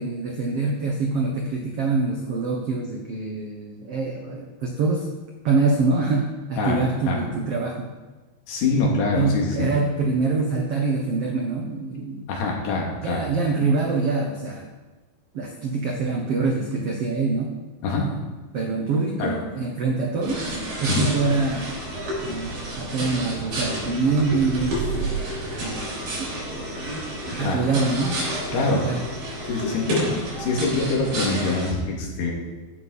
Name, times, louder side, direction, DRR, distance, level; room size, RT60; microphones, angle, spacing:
voice 1, 0.0-5.1 5.4-7.9 9.1-12.2 13.0-14.7 15.3-17.5 18.5-21.8 22.2-25.1 26.2-26.6 27.4-28.2 28.5-29.1, right 3 dB, 80° right, 1 dB, 1.3 m, -25 dB
voice 2, 8.5-9.7 12.3-13.2 17.8-18.1 19.2-19.3 20.9-21.1 27.4-27.6 28.5-28.8 29.5-30.0 30.4-32.3, left 3 dB, 80° left, -1 dB, 4.5 m, -24 dB
sound 1, 20.2-31.7, right 1 dB, 65° right, 5.9 m, -30 dB
14.5 x 11.5 x 4.2 m, 1.3 s
omnidirectional pair, 4.6 m